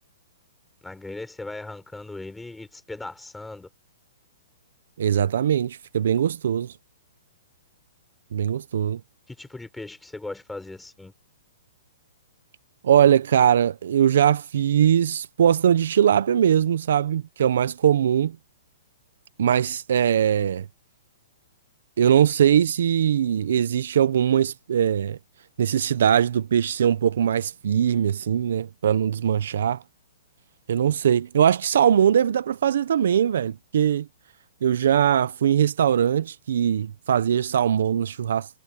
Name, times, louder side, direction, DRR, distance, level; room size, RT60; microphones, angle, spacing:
voice 1, 0.8-3.7 9.3-11.1, left 2 dB, 5° left, 4.0 m, -38 dB
voice 2, 5.0-6.7 8.3-9.0 12.8-18.4 19.4-20.7 22.0-25.2 25.6-29.8 30.7-34.1 34.6-38.5, right 9 dB, 70° right, 0.7 m, -21 dB
hypercardioid pair, 160°, 0 cm